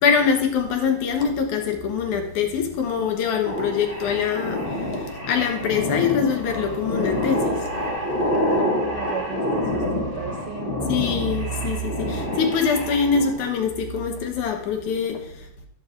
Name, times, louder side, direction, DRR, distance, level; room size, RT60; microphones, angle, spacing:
voice 1, 0.0-7.7 10.8-15.5, left 6 dB, 85° left, 4 dB, 2.7 m, -24 dB
sound 1, 3.5-13.4, left 1 dB, 20° left, 1.8 m, -27 dB
voice 2, 8.5-11.0, right 9 dB, 80° right, 4 dB, 1.2 m, -36 dB
12.0 x 11.0 x 2.5 m, 0.72 s
omnidirectional pair, 3.3 m